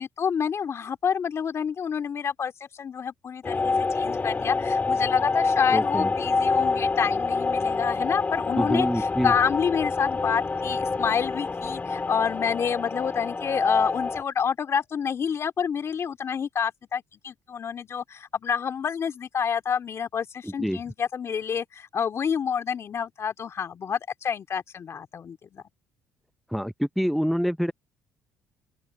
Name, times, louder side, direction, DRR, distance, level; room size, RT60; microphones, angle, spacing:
voice 1, 0.0-25.6, left 7 dB, 45° left, 2.4 m, -28 dB
sound 1, 3.4-14.2, left 4 dB, 25° left, 2.7 m, -26 dB
voice 2, 5.7-6.1 8.6-9.3 20.4-20.8 26.5-27.7, equal, ahead, 0.6 m, -26 dB
open air
supercardioid pair, 80°, 6 cm